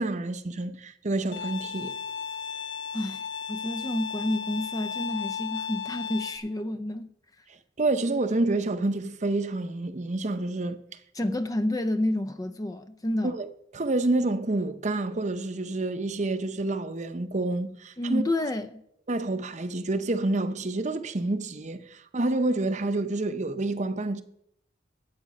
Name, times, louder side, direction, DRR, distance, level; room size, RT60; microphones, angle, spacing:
voice 1, 0.0-1.9 7.8-10.8 13.2-13.5 13.7-18.2 19.1-24.2, right 2 dB, 40° right, 0.7 m, -28 dB
Bowed string instrument, 1.3-6.4, left 7 dB, 75° left, 1.3 m, -35 dB
voice 2, 2.9-7.1 7.4-7.5 11.1-13.4 18.0-18.8, left 1 dB, 20° left, 0.5 m, -30 dB
12.0 x 8.2 x 5.3 m
head